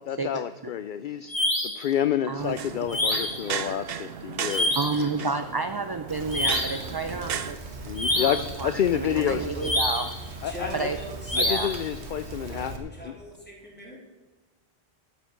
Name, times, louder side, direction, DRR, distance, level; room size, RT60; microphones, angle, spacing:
voice 1, 0.1-4.8 7.8-9.5 10.4-10.9 11.4-13.1, left 10 dB, 60° left, 13 dB, 0.6 m, -29 dB
sound 1, 1.3-1.9 2.9-3.5 4.5-5.0 6.3-6.9 8.0-8.5 9.6-10.2 11.3-11.8, left 1 dB, 30° left, 1.9 m, -27 dB
voice 2, 2.3-2.7 4.7-7.6 8.1-10.1 10.7-11.0 11.3-11.8, right 4 dB, 30° right, 9 dB, 0.4 m, -30 dB
sound 2, 2.4-7.5, right 8 dB, 65° right, 0.9 m, -35 dB
Rain, 6.1-12.8, right 3 dB, 85° right, 1.7 m, -39 dB
voice 3, 10.5-11.8 12.4-14.0, equal, 10° left, -3 dB, 3.9 m, -40 dB
12.5 x 8.1 x 6.4 m, 1.2 s
omnidirectional pair, 1.1 m